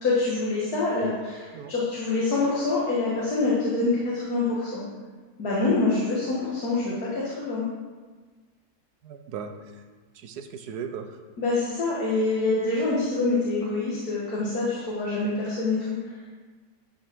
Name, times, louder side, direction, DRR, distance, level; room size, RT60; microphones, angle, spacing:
voice 1, 0.0-4.8 5.4-7.6 11.4-16.3, left 3 dB, 75° left, -6 dB, 2.3 m, -26 dB
voice 2, 9.0-9.8 10.1-11.2, right 6 dB, 85° right, 7 dB, 1.4 m, -37 dB
11.0 x 5.4 x 6.1 m, 1.4 s
omnidirectional pair, 1.6 m